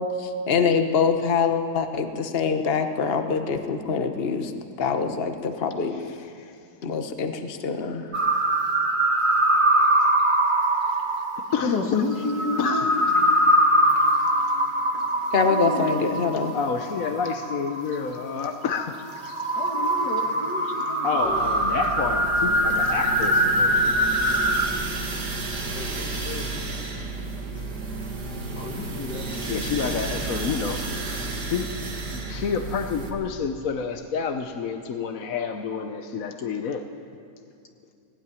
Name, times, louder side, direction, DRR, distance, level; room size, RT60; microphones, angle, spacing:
voice 1, 0.0-4.5 4.8-6.0 6.8-8.1 15.3-16.5, left 5 dB, 40° left, 6 dB, 1.3 m, -24 dB
voice 2, 7.8-8.7 11.5-12.0 12.6-12.9 16.5-19.0 19.2-19.4 21.0-24.0 29.5-30.8 31.4-36.8, left 6 dB, 60° left, 6 dB, 1.3 m, -29 dB
sound 1, 8.1-18.2 18.7-24.7, right 1 dB, 30° right, 1.4 m, -23 dB
voice 3, 11.6-12.9 15.5-16.4 19.6-21.8 25.7-26.5 28.6-29.7, left 3 dB, 80° left, 2 dB, 2.6 m, -31 dB
sound 2, 21.2-33.1, right 3 dB, 90° right, 2.9 m, -32 dB
18.0 x 18.0 x 9.8 m, 2.4 s
omnidirectional pair, 1.7 m